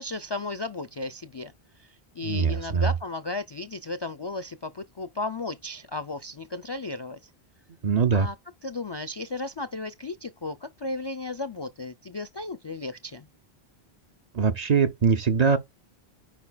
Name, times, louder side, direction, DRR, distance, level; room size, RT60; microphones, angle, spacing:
voice 1, 0.0-7.3 8.1-8.4 8.6-13.3, left 3 dB, 45° left, 0.3 m, -35 dB
voice 2, 2.2-2.9 7.8-8.3 14.3-15.6, right 6 dB, 50° right, 0.5 m, -22 dB
8.5 x 5.1 x 2.2 m
omnidirectional pair, 1.0 m